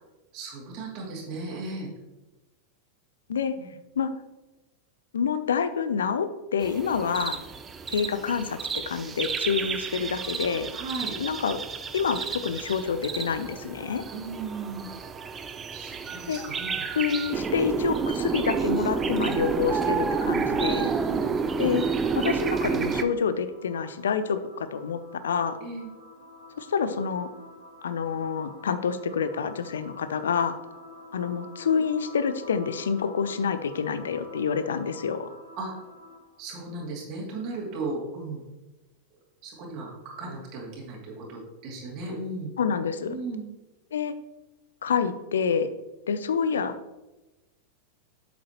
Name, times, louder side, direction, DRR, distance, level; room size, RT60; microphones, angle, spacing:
voice 1, 0.3-1.9 3.6-3.7 9.6-9.7 10.7-11.1 14.1-14.9 15.7-16.8 20.9-21.3 25.6-25.9 35.6-35.7 36.4-38.4 39.4-42.5 43.0-43.5, right 3 dB, 40° right, -3 dB, 2.5 m, -36 dB
voice 2, 5.1-7.4 7.9-8.6 8.9-10.7 11.2-11.6 11.9-14.0 16.3-16.4 16.9-20.9 21.6-21.8 22.1-25.0 25.2-25.6 26.6-27.3 27.8-30.6 31.1-35.3 42.6-43.2 43.9-44.1 44.8-45.7 46.1-46.7, left 6 dB, 65° left, 12 dB, 0.5 m, -27 dB
sound 1, 6.6-23.0, right 5 dB, 20° right, 0.5 m, -30 dB
sound 2, 20.5-36.4, left 1 dB, 90° left, 2.0 m, -48 dB
8.2 x 7.5 x 3.0 m, 1.0 s
figure-of-eight pair, 90°, 0 cm